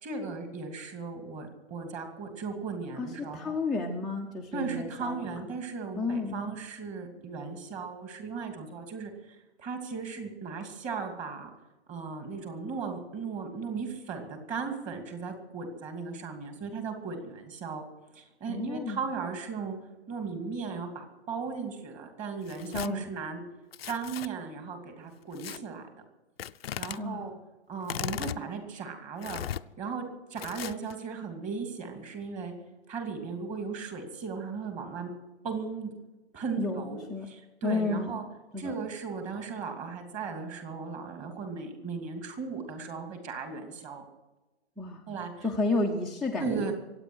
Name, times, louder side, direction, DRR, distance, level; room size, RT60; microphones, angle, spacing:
voice 1, 0.0-3.6 4.5-11.5 11.9-17.8 18.1-19.8 20.1-23.4 23.9-25.9 26.8-27.3 27.7-29.4 29.8-30.0 30.3-32.5 32.9-35.1 35.4-35.9 36.3-38.2 38.6-44.0 45.1-45.5 46.4-46.7, right 5 dB, 20° right, 5 dB, 2.5 m, -37 dB
voice 2, 2.9-5.3 6.0-6.4 18.5-19.0 22.7-23.1 27.0-27.2 36.6-37.3 37.6-38.1 38.5-38.7 44.8-45.0 45.4-46.7, left 3 dB, ahead, -3 dB, 0.6 m, -31 dB
Tearing, 22.4-22.9 23.7-24.3 25.4-25.6 26.4-27.0 27.8-28.4 29.2-29.6 30.4-30.9, left 10 dB, 65° left, 0.6 m, -37 dB
23.5 x 8.8 x 6.2 m, 1.1 s
hypercardioid pair, 135°, 33 cm